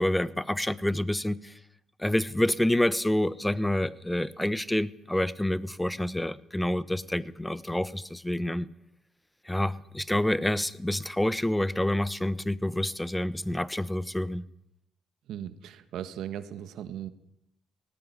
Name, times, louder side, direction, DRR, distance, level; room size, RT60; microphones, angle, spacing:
voice 1, 0.0-1.5 2.0-8.7 9.4-14.5, left 1 dB, 5° left, 17 dB, 1.1 m, -28 dB
voice 2, 15.3-17.1, right 10 dB, 85° right, 11 dB, 1.7 m, -38 dB
18.5 x 18.5 x 10.0 m, 0.77 s
cardioid pair, 90°, 0 cm